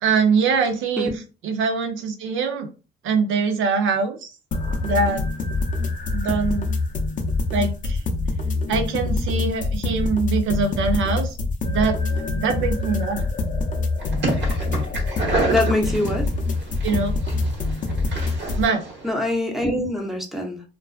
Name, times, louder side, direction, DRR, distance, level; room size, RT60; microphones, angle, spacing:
voice 1, 0.0-2.7 3.0-4.3 4.8-5.3 6.1-6.7 7.5-8.0 8.7-11.4 11.7-12.0 12.4-13.3 16.8-17.1 18.6-18.8, right 5 dB, 80° right, 0.5 m, -23 dB
sound 1, 4.5-18.6, left 3 dB, 40° left, 0.5 m, -25 dB
sound 2, 14.0-19.1, right 2 dB, 65° right, 1.1 m, -29 dB
voice 2, 15.5-16.3 19.0-20.6, left 1 dB, ahead, 0.6 m, -24 dB
2.4 x 2.2 x 2.3 m
cardioid pair, 90°, 20 cm